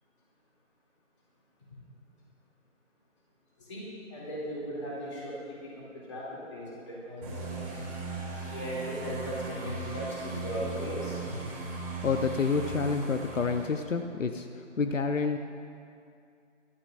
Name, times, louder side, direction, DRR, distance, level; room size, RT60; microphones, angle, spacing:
voice 1, 4.1-5.3 6.1-6.2 6.5-6.6 7.1-7.3 8.5-11.1, equal, 25° left, -6 dB, 2.9 m, -36 dB
sound 1, 7.2-13.7, right 3 dB, 15° right, 3.0 m, -38 dB
voice 2, 12.0-15.4, left 4 dB, 75° left, 6 dB, 0.9 m, -29 dB
25.0 x 12.5 x 2.6 m, 2.4 s
hypercardioid pair, 175°, 38 cm